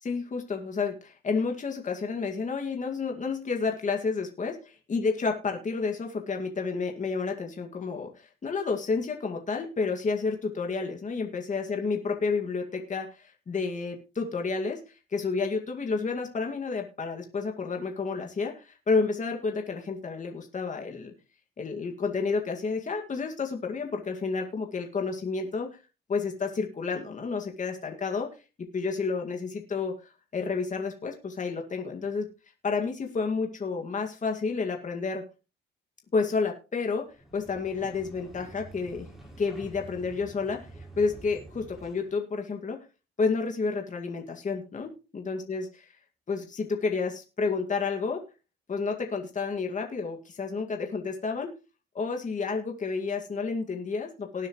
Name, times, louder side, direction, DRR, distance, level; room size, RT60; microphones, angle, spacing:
voice 1, 0.0-4.6 4.9-21.1 21.6-25.8 26.1-28.3 28.7-32.3 32.6-35.2 36.1-37.1 37.3-39.1 39.4-42.8 43.2-46.0 46.3-48.2 48.7-51.5 51.9-54.5, left 4 dB, 40° left, 2 dB, 2.2 m, -30 dB
sound 1, 37.1-42.2, right 1 dB, ahead, 5.0 m, -48 dB
19.0 x 7.5 x 3.2 m, 0.32 s
cardioid pair, 90°, 20 cm